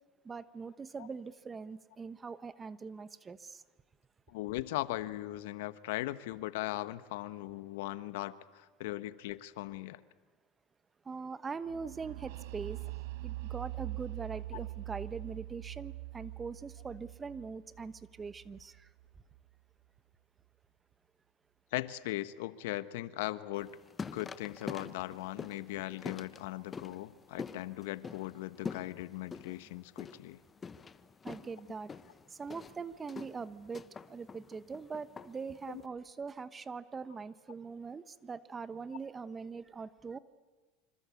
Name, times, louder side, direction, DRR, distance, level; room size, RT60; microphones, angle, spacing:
voice 1, 0.2-3.6 11.0-12.8 13.2-18.9 31.2-31.9 32.3-40.2, right 5 dB, 20° right, 1.1 m, -42 dB
voice 2, 4.3-10.0 14.5-14.6 21.7-23.7 24.1-30.4 35.7-35.8, left 16 dB, 80° left, 1.1 m, -39 dB
sound 1, 11.7-19.4, right 18 dB, 75° right, 1.4 m, -43 dB
sound 2, 23.5-35.8, left 5 dB, 20° left, 1.1 m, -46 dB
26.5 x 26.0 x 8.4 m
supercardioid pair, 120°, 0 cm